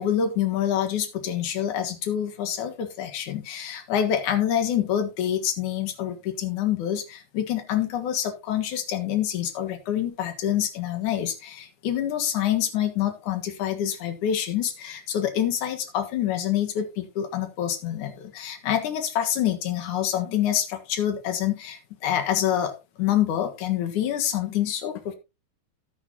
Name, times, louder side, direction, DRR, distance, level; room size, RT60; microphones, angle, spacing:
voice 1, 0.0-22.7 23.0-25.2, left 10 dB, 65° left, 7 dB, 2.9 m, -26 dB
14.0 x 9.4 x 2.9 m, 0.26 s
omnidirectional pair, 3.8 m